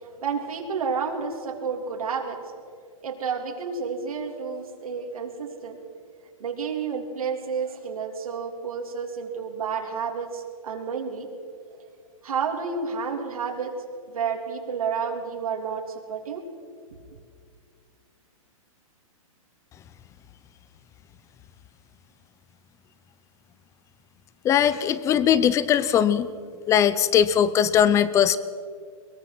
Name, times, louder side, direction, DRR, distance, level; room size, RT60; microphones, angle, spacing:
voice 1, 0.0-2.4 3.0-5.8 6.4-11.3 12.2-13.8 14.1-16.4, right 6 dB, 85° right, 2 dB, 3.3 m, -30 dB
voice 2, 24.4-26.3 26.7-28.4, left 9 dB, 15° left, 16 dB, 0.7 m, -20 dB
22.0 x 22.0 x 6.1 m, 2.1 s
hypercardioid pair, 150°, 18 cm